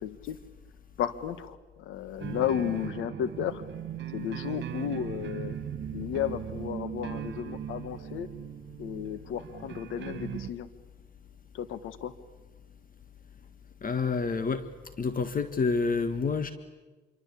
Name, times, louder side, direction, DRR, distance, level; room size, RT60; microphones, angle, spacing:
voice 1, 0.0-0.4 1.0-3.6 4.1-5.6 5.9-8.3 8.8-10.7 11.5-12.1, left 10 dB, 90° left, 14 dB, 1.6 m, -33 dB
sound 1, 2.2-10.5, right 10 dB, 65° right, 2.3 m, -38 dB
voice 2, 13.8-14.6 15.0-16.5, left 4 dB, 45° left, 10 dB, 1.6 m, -28 dB
26.5 x 24.0 x 8.5 m, 1.3 s
cardioid pair, 90°, 20 cm